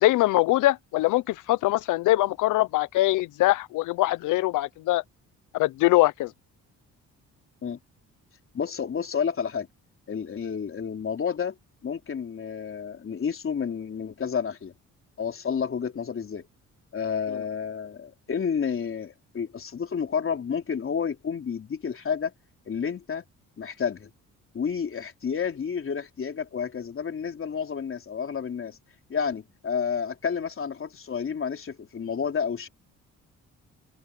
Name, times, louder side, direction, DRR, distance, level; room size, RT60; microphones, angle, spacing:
voice 1, 0.0-5.0 5.5-6.3, left 17 dB, 85° left, 0.7 m, -22 dB
voice 2, 8.5-9.7 10.1-11.6 11.8-14.7 15.2-16.5 16.9-22.3 22.7-23.2 23.6-24.1 24.5-28.8 29.1-32.7, left 6 dB, 45° left, 3.5 m, -30 dB
open air
cardioid pair, 90°, 30 cm